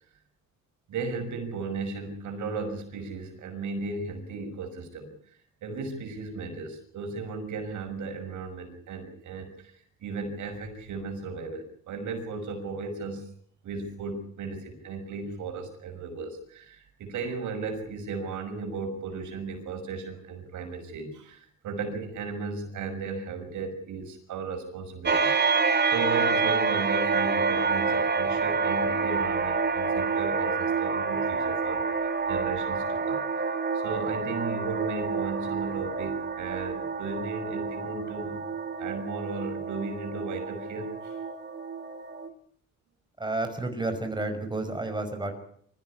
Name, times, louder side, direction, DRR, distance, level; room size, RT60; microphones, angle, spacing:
voice 1, 0.9-13.3 13.6-25.6 25.8-32.0 32.3-33.2 33.7-38.4 38.8-41.2, right 4 dB, 75° right, 5 dB, 6.3 m, -35 dB
sound 1, 25.1-42.3, right 5 dB, 35° right, 2.5 m, -28 dB
voice 2, 43.2-45.3, right 2 dB, 15° right, 6 dB, 5.6 m, -31 dB
24.5 x 15.0 x 9.9 m, 0.65 s
cardioid pair, 90°, 30 cm